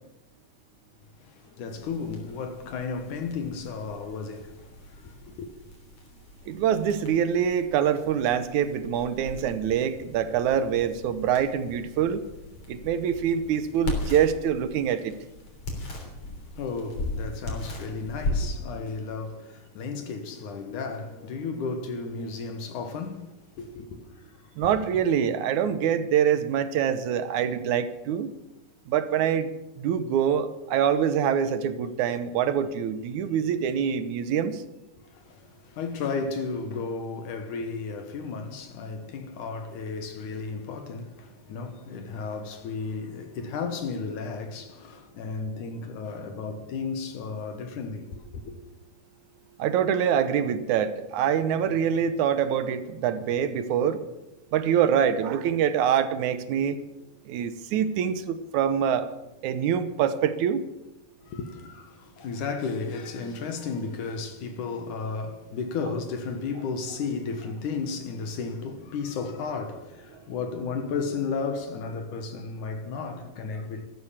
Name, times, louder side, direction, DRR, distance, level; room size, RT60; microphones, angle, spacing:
voice 1, 1.2-5.5 16.1-16.2 16.6-24.4 24.7-24.8 35.1-48.6 61.3-73.9, left 4 dB, 70° left, 2.7 m, -34 dB
sound 1, 1.7-21.3, left 2 dB, 45° left, 4.4 m, -38 dB
voice 2, 6.5-12.2 12.7-15.1 24.6-28.3 28.9-29.5 29.8-34.6 49.6-54.0 54.5-56.8 57.3-59.1 59.4-60.6, right 8 dB, 70° right, 2.2 m, -25 dB
14.5 x 13.0 x 7.3 m
omnidirectional pair, 3.8 m